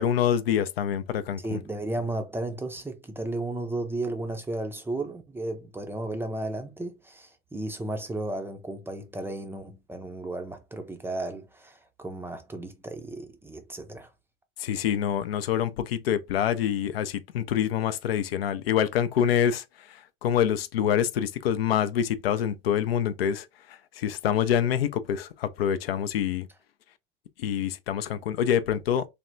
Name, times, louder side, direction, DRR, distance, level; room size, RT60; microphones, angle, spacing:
voice 1, 0.0-1.6 14.6-19.6 20.2-23.5 24.0-26.5 27.4-29.1, left 9 dB, 85° left, 0.5 m, -26 dB
voice 2, 1.4-14.1, right 2 dB, 10° right, 0.4 m, -34 dB
3.4 x 2.1 x 2.5 m
hypercardioid pair, 95°, 29 cm